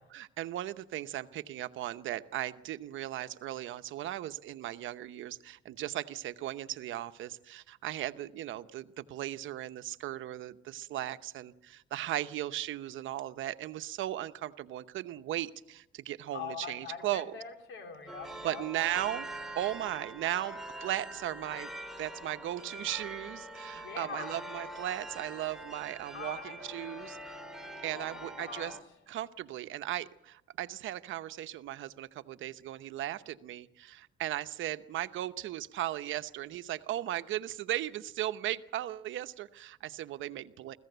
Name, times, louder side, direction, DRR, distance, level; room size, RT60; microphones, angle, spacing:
voice 1, 0.1-17.3 18.4-19.3 19.6-21.7 22.0-27.4 27.8-28.8 29.1-40.8, right 13 dB, 80° right, 12 dB, 0.9 m, -37 dB
voice 2, 16.3-18.7 19.0-19.1 23.7-24.4 26.1-26.7 27.9-28.8, left 6 dB, 80° left, 4 dB, 3.8 m, -43 dB
sound 1, 18.1-28.8, right 1 dB, ahead, 2.2 m, -44 dB
24.5 x 15.5 x 8.0 m, 0.88 s
cardioid pair, 90°, 20 cm